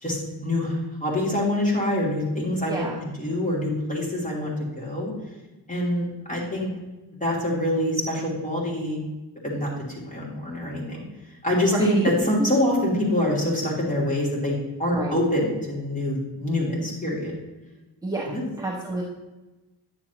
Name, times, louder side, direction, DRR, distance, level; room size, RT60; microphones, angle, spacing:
voice 1, 0.0-2.9 3.2-5.1 5.7-6.7 7.2-9.0 9.4-11.0 11.4-11.9 12.2-17.3 18.3-18.4, left 1 dB, 15° left, -4 dB, 2.8 m, -25 dB
voice 2, 2.7-3.0 11.7-12.1 14.9-15.2 18.0-19.0, right 2 dB, 10° right, -4 dB, 1.0 m, -28 dB
10.0 x 7.0 x 3.0 m, 1.1 s
cardioid pair, 130°, 43 cm